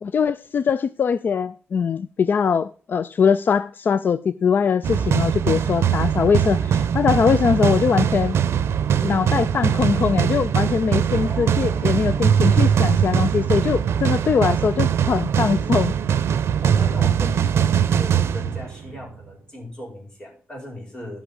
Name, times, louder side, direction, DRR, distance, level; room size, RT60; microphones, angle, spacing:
voice 1, 0.0-8.4 9.0-15.9, left 6 dB, 50° left, 0.4 m, -21 dB
sound 1, 4.8-19.0, right 8 dB, 85° right, 0.6 m, -21 dB
voice 2, 11.1-12.1 16.6-21.2, left 1 dB, 20° left, 5.4 m, -37 dB
14.0 x 6.1 x 5.3 m
wide cardioid pair, 150°, 4 cm